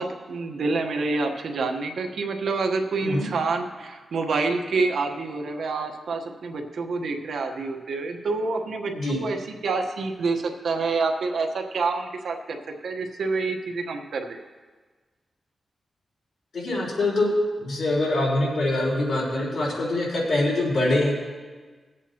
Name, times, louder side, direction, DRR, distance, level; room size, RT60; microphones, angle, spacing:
voice 1, 0.0-9.4 9.6-12.6 12.8-14.4, right 3 dB, 80° right, 4 dB, 1.1 m, -27 dB
voice 2, 16.5-21.2, left 1 dB, 65° left, -4 dB, 4.0 m, -24 dB
21.0 x 8.1 x 2.9 m, 1.4 s
cardioid pair, 85°, 0 cm